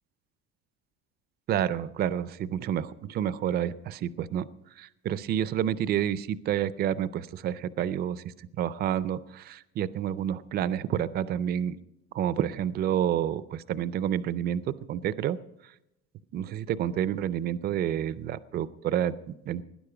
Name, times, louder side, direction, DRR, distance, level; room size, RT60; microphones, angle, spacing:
voice 1, 1.5-4.5 4.8-11.8 12.1-15.4 16.3-19.6, right 10 dB, 30° right, 16 dB, 0.4 m, -29 dB
19.0 x 10.5 x 4.9 m, 0.86 s
cardioid pair, 160°, 33 cm